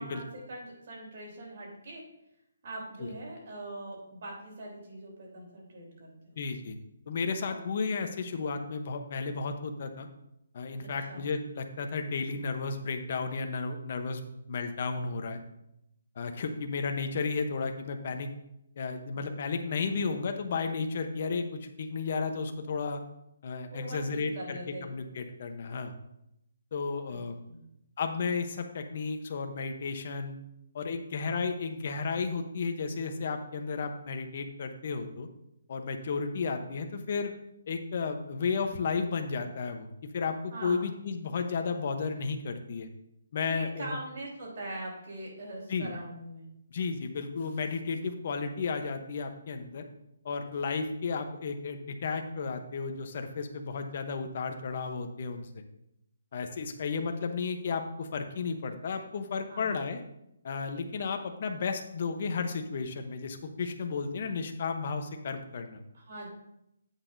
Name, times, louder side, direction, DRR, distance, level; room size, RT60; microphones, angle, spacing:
voice 1, 0.0-2.0 2.6-6.4 7.4-7.6 10.8-11.3 23.7-24.8 27.1-27.2 27.5-27.6 40.5-41.0 43.5-46.5 59.5-59.7 65.9-66.3, right 1 dB, 50° right, -2 dB, 3.4 m, -42 dB
voice 2, 6.4-6.8 7.1-10.1 10.5-15.4 16.2-18.3 18.8-23.0 23.4-25.9 26.7-27.4 28.0-30.4 30.7-35.3 35.7-37.3 37.7-42.9 43.3-44.0 45.7-45.9 46.7-49.8 50.2-55.6 56.3-60.0 60.4-65.8, left 4 dB, 45° left, 6 dB, 0.9 m, -33 dB
9.8 x 8.2 x 2.7 m, 0.83 s
hypercardioid pair, 170°, 0 cm